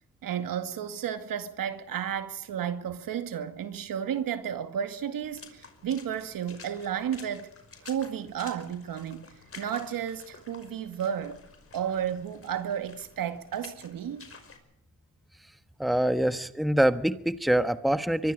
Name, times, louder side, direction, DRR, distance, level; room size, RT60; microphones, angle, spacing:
voice 1, 0.2-7.5 7.9-11.4 11.7-14.3, right 9 dB, 70° right, 2.2 m, -32 dB
Water / Splash splatter, 5.2-14.6, left 4 dB, 40° left, 5.5 m, -51 dB
voice 2, 15.8-18.3, right 1 dB, ahead, 1.3 m, -25 dB
24.5 x 23.5 x 5.0 m
cardioid pair, 80°, 35 cm